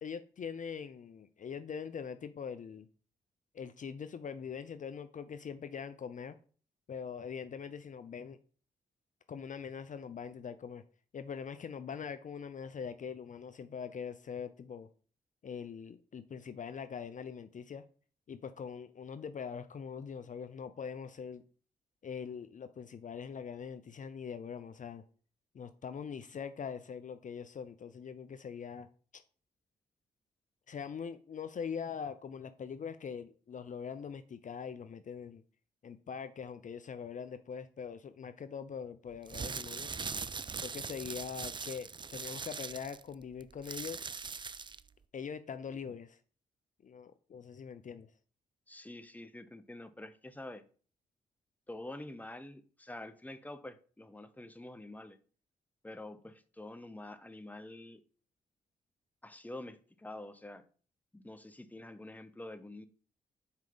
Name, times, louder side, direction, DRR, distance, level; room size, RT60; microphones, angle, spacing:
voice 1, 0.0-2.9 3.5-6.4 6.9-8.4 9.3-10.8 11.1-14.9 15.4-17.8 18.3-21.4 22.0-25.0 25.5-28.9 29.1-29.2 30.7-35.4 35.8-39.9 40.6-44.1 45.1-46.2 46.8-48.1, left 6 dB, 50° left, 0.5 m, -42 dB
sound 1, 39.2-44.9, right 5 dB, 30° right, 0.4 m, -41 dB
voice 2, 48.7-50.6 51.7-55.2 55.8-58.0 59.2-60.6 61.1-62.9, left 1 dB, 10° left, 0.9 m, -47 dB
5.7 x 4.4 x 4.0 m
supercardioid pair, 45°, 17 cm